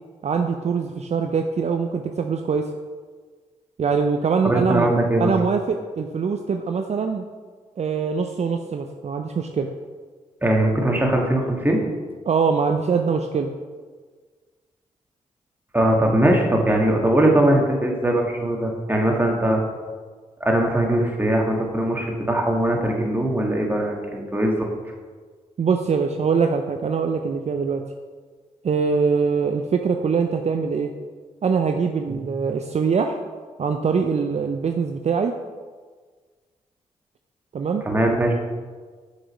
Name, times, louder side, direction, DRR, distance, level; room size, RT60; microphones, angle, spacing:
voice 1, 0.2-2.7 3.8-4.9 5.2-7.2 7.8-9.7 12.3-13.5 25.6-27.8 28.6-30.9 31.4-33.2 33.6-35.3 37.5-37.8, right 5 dB, 50° right, 5 dB, 0.5 m, -23 dB
voice 2, 4.4-5.3 10.4-11.8 15.7-19.6 20.4-24.7 32.1-32.2 37.8-38.3, right 1 dB, 15° right, 0 dB, 1.7 m, -20 dB
6.1 x 4.9 x 5.4 m, 1.5 s
supercardioid pair, 45°, 14 cm